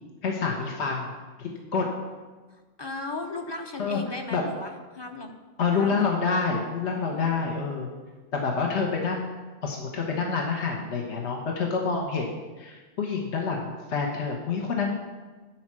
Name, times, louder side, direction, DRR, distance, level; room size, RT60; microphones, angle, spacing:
voice 1, 0.2-1.1 1.4-1.9 3.8-4.0 4.3-4.4 5.6-7.9 8.3-9.3 9.6-15.0, left 5 dB, 65° left, 0 dB, 1.4 m, -27 dB
voice 2, 2.5-5.3 5.8-6.1 6.8-7.4, left 2 dB, 25° left, 4 dB, 0.7 m, -37 dB
10.5 x 4.5 x 7.4 m, 1.3 s
omnidirectional pair, 1.3 m